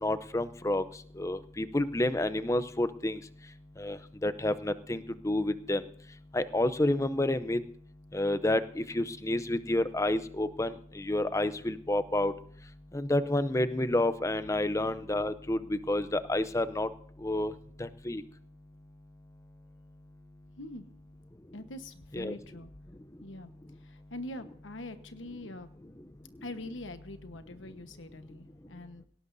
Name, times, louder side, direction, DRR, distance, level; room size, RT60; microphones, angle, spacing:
voice 1, 0.0-0.8 1.2-3.2 3.8-5.8 6.3-7.6 8.1-12.3 12.9-16.9 17.2-17.5 17.8-18.2 22.1-22.3, left 1 dB, 15° left, 13 dB, 0.6 m, -29 dB
voice 2, 21.5-22.7 23.2-23.5 23.8-25.7 26.4-29.0, left 1 dB, 85° left, 9 dB, 1.2 m, -43 dB
18.5 x 17.5 x 2.7 m, 0.62 s
head